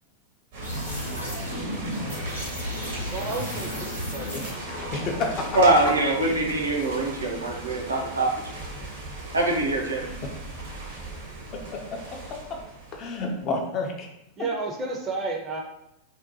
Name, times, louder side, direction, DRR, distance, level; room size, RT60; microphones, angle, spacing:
sound 1, 0.5-13.5, right 2 dB, 55° right, 0.8 m, -39 dB
sound 2, 0.6-6.8, equal, 90° left, 0.7 m, -34 dB
voice 1, 3.1-4.6 14.4-15.6, right 3 dB, 25° right, 0 dB, 0.5 m, -32 dB
voice 2, 4.3-5.4 6.2-6.5 10.0-10.4 11.7-11.8 12.9-14.1, left 3 dB, 35° left, 1 dB, 0.5 m, -31 dB
voice 3, 5.5-8.3 9.3-10.1, right 2 dB, 75° right, 0 dB, 0.5 m, -23 dB
2.7 x 2.1 x 2.7 m, 0.83 s
figure-of-eight pair, 90°, 0 cm